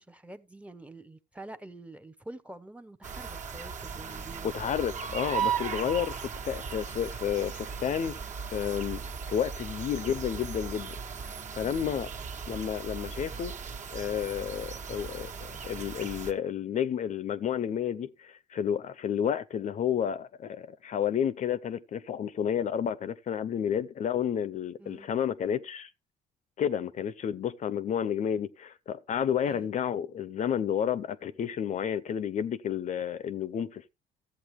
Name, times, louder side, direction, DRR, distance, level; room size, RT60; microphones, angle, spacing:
voice 1, 0.0-4.6 11.6-11.9 24.8-25.1 29.4-29.7, right 2 dB, 10° right, 0.8 m, -47 dB
sound 1, 3.0-16.3, right 6 dB, 45° right, 1.4 m, -37 dB
voice 2, 4.5-8.2 8.5-11.0 11.5-12.1 12.5-13.5 13.9-25.9 26.6-33.9, left 8 dB, 45° left, 0.6 m, -31 dB
14.0 x 8.0 x 3.1 m
cardioid pair, 110°, 17 cm